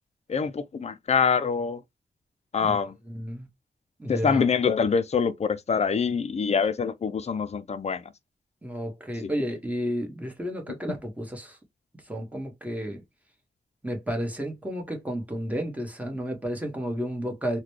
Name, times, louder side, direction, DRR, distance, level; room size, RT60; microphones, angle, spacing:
voice 1, 0.3-1.8 2.5-3.0 4.1-8.1 9.2-9.3, left 6 dB, 40° left, 0.5 m, -25 dB
voice 2, 3.1-3.5 4.0-4.5 8.6-11.6 12.1-13.0 13.8-17.6, equal, 10° right, 1.3 m, -32 dB
3.9 x 2.2 x 3.2 m
wide cardioid pair, 115°, 17 cm